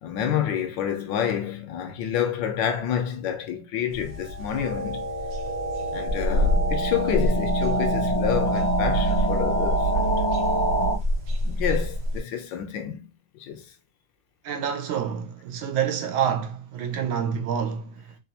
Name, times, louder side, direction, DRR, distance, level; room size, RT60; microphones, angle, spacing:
voice 1, 0.0-5.0 5.9-10.2 11.4-13.1 13.5-13.6, left 9 dB, 75° left, 1.2 m, -28 dB
sound 1, 3.9-12.2, left 1 dB, 60° right, 1.4 m, -28 dB
sound 2, 4.3-11.0, right 2 dB, 35° left, 0.7 m, -25 dB
voice 2, 14.4-18.2, right 8 dB, 85° right, 1.5 m, -28 dB
4.1 x 2.5 x 2.7 m
omnidirectional pair, 2.2 m